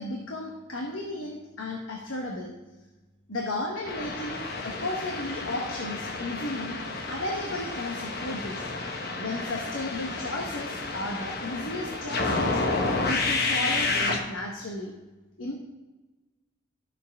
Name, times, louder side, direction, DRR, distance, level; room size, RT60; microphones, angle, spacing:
voice 1, 0.0-2.5 3.3-6.8 7.1-8.7 9.2-12.6 13.1-14.9 15.4-15.5, left 2 dB, 85° left, 0 dB, 1.2 m, -34 dB
sound 1, 3.8-14.2, left 3 dB, 50° left, 1.1 m, -30 dB
13.0 x 6.9 x 3.5 m, 1.2 s
head